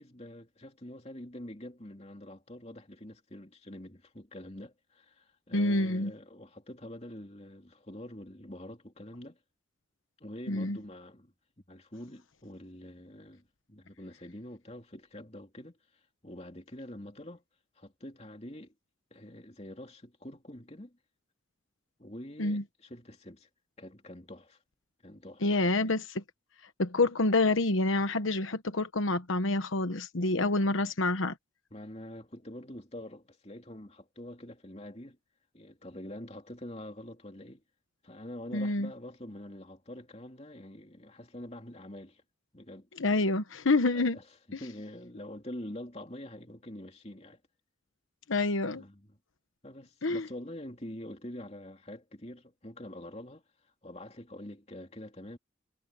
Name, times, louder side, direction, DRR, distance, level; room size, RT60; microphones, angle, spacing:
voice 1, 0.0-9.4 10.2-11.3 11.7-17.4 17.7-18.7 19.1-21.0 22.0-23.5 23.8-24.6 25.0-25.9 30.6-30.9 31.7-35.2 35.5-37.6 38.0-42.2 42.5-42.9 43.9-47.4 48.7-49.2 49.6-55.4, left 1 dB, 30° left, 3.0 m, -46 dB
voice 2, 5.5-6.1 10.5-10.8 22.4-22.6 25.4-26.2 26.8-31.4 38.5-38.9 43.0-44.2 44.5-44.6 48.3-48.8 50.0-50.3, left 2 dB, 85° left, 1.1 m, -27 dB
head